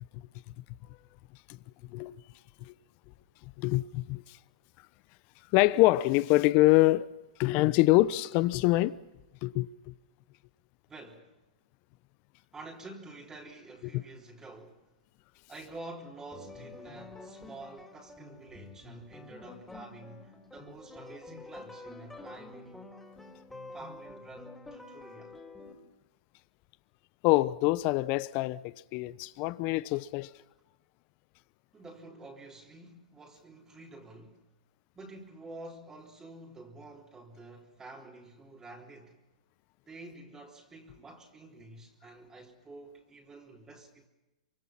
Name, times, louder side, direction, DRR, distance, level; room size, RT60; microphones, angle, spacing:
voice 1, 3.6-4.2 5.5-7.1 7.4-9.0 9.4-9.9 27.2-30.3, left 19 dB, 40° left, 0.9 m, -25 dB
voice 2, 10.9-11.4 12.5-14.9 15.5-22.8 23.7-25.4 31.7-34.4 34.9-39.2 39.9-44.1, right 2 dB, 15° right, 3.7 m, -49 dB
sound 1, 16.3-25.7, left 3 dB, 5° left, 4.0 m, -48 dB
27.5 x 25.5 x 5.9 m
hypercardioid pair, 115°, 4 cm